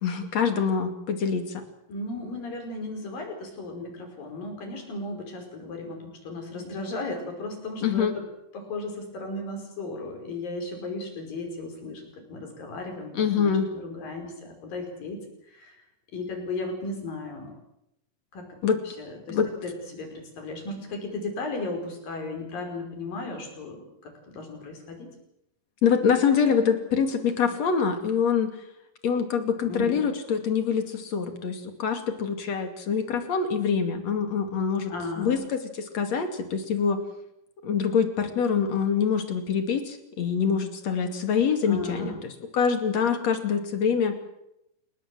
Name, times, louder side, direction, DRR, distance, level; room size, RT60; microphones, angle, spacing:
voice 1, 0.0-1.6 7.8-8.1 13.1-13.7 18.6-18.8 19.3-19.5 25.8-28.5 29.0-37.0 37.6-44.2, left 6 dB, 50° left, 7 dB, 3.5 m, -25 dB
voice 2, 1.9-8.3 8.5-15.8 16.1-17.5 18.3-18.5 18.9-25.1 29.6-30.0 34.9-35.4 41.7-42.3, left 2 dB, 75° left, 4 dB, 7.0 m, -35 dB
29.5 x 18.0 x 7.8 m, 0.83 s
omnidirectional pair, 4.0 m